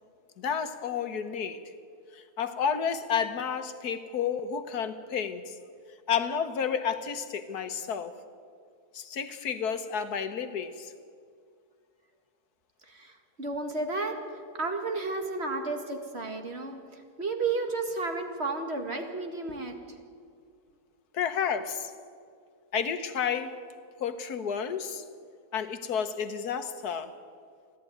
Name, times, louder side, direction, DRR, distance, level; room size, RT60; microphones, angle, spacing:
voice 1, 0.4-1.7 2.1-5.5 6.1-8.1 8.9-10.9 21.1-21.9 22.7-23.6 24.0-25.0 25.5-27.1, left 7 dB, 75° left, 10 dB, 1.6 m, -31 dB
voice 2, 12.9-19.7, right 3 dB, 40° right, 4 dB, 2.1 m, -33 dB
29.5 x 11.0 x 9.3 m, 2.2 s
omnidirectional pair, 1.7 m